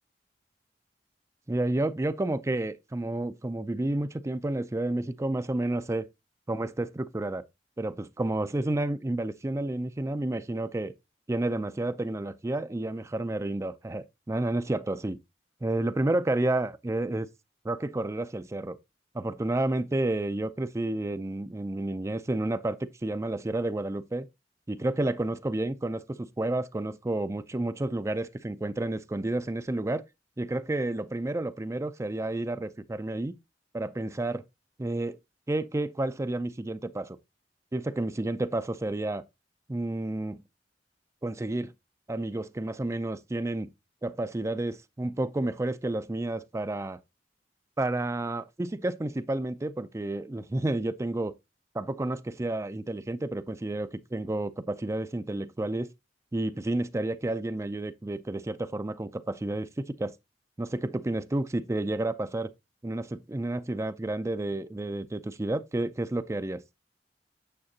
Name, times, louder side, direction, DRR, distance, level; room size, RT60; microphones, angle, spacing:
voice 1, 1.5-6.1 6.5-7.4 7.8-10.9 11.3-15.2 15.6-17.3 17.6-18.8 19.1-24.3 24.7-30.0 30.4-33.3 33.7-34.4 34.8-35.2 35.5-37.1 37.7-39.2 39.7-40.4 41.2-41.7 42.1-43.7 44.0-47.0 47.8-51.3 51.7-55.9 56.3-60.1 60.6-62.5 62.8-66.6, right 2 dB, 15° right, 0.4 m, -30 dB
8.8 x 7.3 x 2.7 m
head